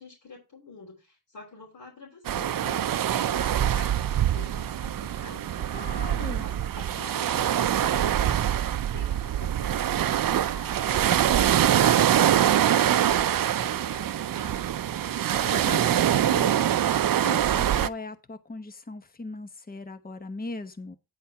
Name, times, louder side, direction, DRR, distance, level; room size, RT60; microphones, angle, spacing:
voice 1, 0.0-14.7, left 3 dB, 70° left, 3.7 m, -47 dB
sound 1, 2.3-17.9, right 10 dB, 65° right, 0.5 m, -24 dB
voice 2, 5.7-6.5 15.3-16.6 17.0-21.0, left 3 dB, 25° left, 1.0 m, -39 dB
9.7 x 4.2 x 5.7 m
wide cardioid pair, 105°, 37 cm